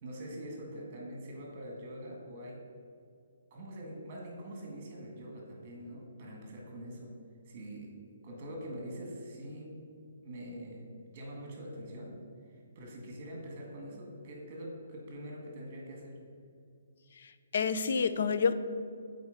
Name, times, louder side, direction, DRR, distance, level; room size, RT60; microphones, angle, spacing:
voice 1, 0.0-2.6 3.5-7.1 7.5-9.8 10.2-12.1 12.5-16.2, equal, 30° right, -1 dB, 1.8 m, -44 dB
voice 2, 17.2-18.5, left 5 dB, 50° left, 11 dB, 0.4 m, -29 dB
8.0 x 4.3 x 5.2 m, 2.3 s
hypercardioid pair, 165°, 0 cm